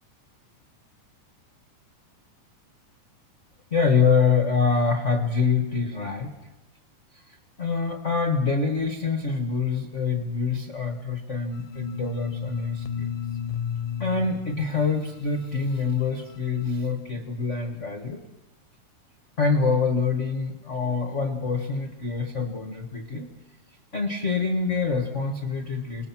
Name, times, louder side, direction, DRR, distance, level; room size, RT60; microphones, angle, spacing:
voice 1, 3.7-6.3 7.3-13.2 14.0-18.2 19.4-23.3 23.9-26.1, left 5 dB, 45° left, 5 dB, 0.9 m, -25 dB
sound 1, 11.5-16.7, left 8 dB, 90° left, 2.6 m, -34 dB
26.0 x 19.5 x 6.0 m, 1.0 s
omnidirectional pair, 3.8 m